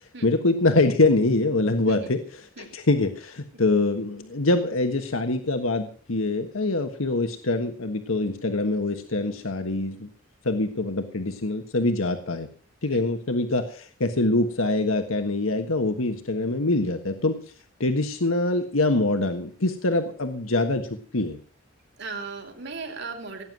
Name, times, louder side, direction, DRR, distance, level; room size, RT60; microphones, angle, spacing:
voice 1, 0.2-10.1 10.4-12.5 12.8-17.3 17.8-20.9 21.1-21.4, left 2 dB, 90° left, 6 dB, 1.4 m, -24 dB
voice 2, 1.9-2.2 2.6-2.7 12.9-13.0 22.0-23.4, right 4 dB, 60° right, 4 dB, 3.3 m, -36 dB
17.5 x 9.6 x 6.2 m, 0.42 s
head